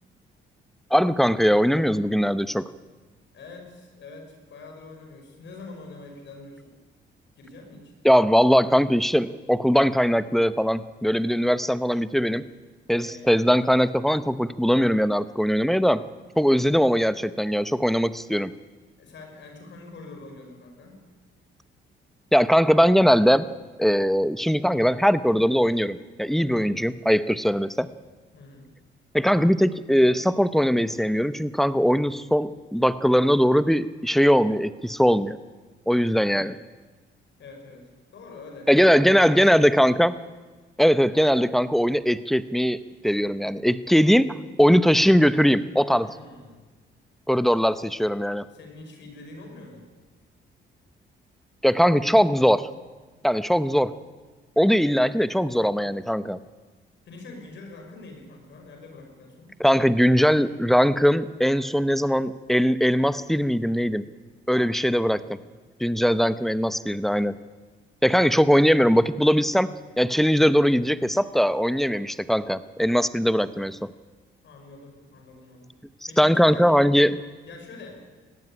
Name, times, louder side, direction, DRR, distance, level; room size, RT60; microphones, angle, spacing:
voice 1, 0.9-2.7 8.0-12.4 12.9-16.0 16.4-18.5 22.3-23.5 23.8-27.9 29.1-35.4 35.9-36.6 38.7-40.1 40.8-46.1 47.3-48.5 51.6-52.7 53.2-53.9 54.6-56.4 59.6-64.0 64.5-65.2 65.8-67.4 68.0-69.7 70.0-73.9 76.2-77.2, equal, ahead, 14 dB, 0.8 m, -20 dB
voice 2, 3.3-6.7 7.4-7.9 12.9-13.3 19.0-21.0 26.3-26.7 28.3-28.7 37.4-40.0 46.0-46.7 48.5-49.9 57.1-60.5 64.5-65.3 74.4-75.7 76.1-76.8 77.4-78.0, left 3 dB, 65° left, 3 dB, 5.5 m, -45 dB
19.0 x 14.5 x 9.9 m, 1.3 s
cardioid pair, 90°, 20 cm